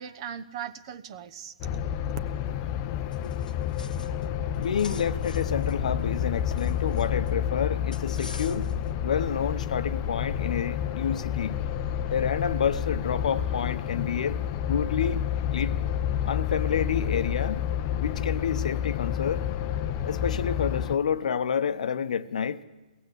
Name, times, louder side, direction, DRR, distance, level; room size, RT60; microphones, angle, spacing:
voice 1, 0.0-2.0, right 9 dB, 35° right, 12 dB, 0.9 m, -40 dB
sound 1, 1.6-21.0, left 10 dB, 25° left, 0.7 m, -29 dB
voice 2, 2.9-3.3 4.6-8.7 9.0-11.6 12.1-14.4 14.7-15.2 15.5-15.7 16.2-17.6 18.0-19.4 20.0-22.6, left 7 dB, 55° left, 13 dB, 1.0 m, -29 dB
sound 2, 3.1-4.3 4.5-7.3 7.9-8.9, left 4 dB, 80° left, 1.3 m, -46 dB
21.5 x 18.0 x 8.2 m, 1.2 s
figure-of-eight pair, 140°, 4 cm